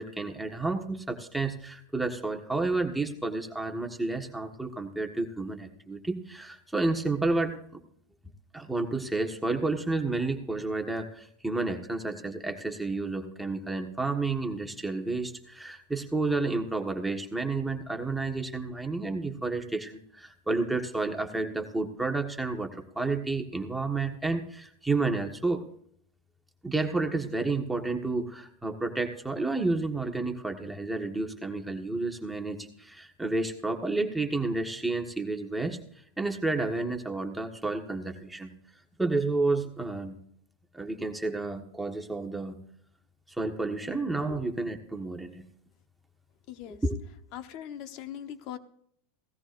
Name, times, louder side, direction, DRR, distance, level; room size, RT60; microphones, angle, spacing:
voice 1, 0.0-7.8 8.5-25.6 26.6-35.8 36.2-38.5 39.0-40.2 40.7-42.6 43.4-45.4 46.7-47.0, right 3 dB, 5° right, 3 dB, 1.4 m, -31 dB
voice 2, 46.5-46.8 47.3-48.6, left 10 dB, 55° left, 9 dB, 1.1 m, -40 dB
17.5 x 13.5 x 2.6 m, 0.66 s
supercardioid pair, 125°, 0 cm